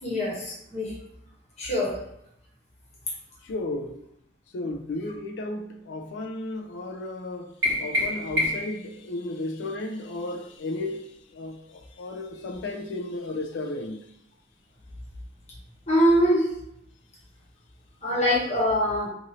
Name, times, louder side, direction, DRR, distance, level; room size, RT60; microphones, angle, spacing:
voice 1, 0.0-0.9 1.6-2.0 15.9-16.5 18.0-19.1, equal, 35° left, 1.0 m, -23 dB
voice 2, 3.4-4.0 4.5-14.1, left 2 dB, 65° left, 0.3 m, -34 dB
sound 1, 7.6-8.8, left 2 dB, 65° right, 1.0 m, -26 dB
2.7 x 2.6 x 2.9 m
head